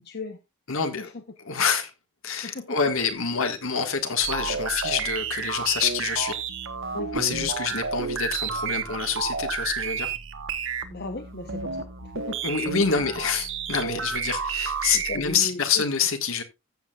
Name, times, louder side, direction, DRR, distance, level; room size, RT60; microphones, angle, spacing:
voice 1, 0.7-1.1 1.4-1.9 2.2-6.4 7.1-10.1 12.4-16.4, left 6 dB, 65° left, 1.7 m, -26 dB
voice 2, 2.4-2.8 6.9-7.1 10.9-12.4 14.4-14.5 14.9-15.8, left 2 dB, 50° left, 0.9 m, -36 dB
sound 1, 4.2-15.4, right 6 dB, 60° right, 1.2 m, -31 dB
14.5 x 7.7 x 2.4 m
head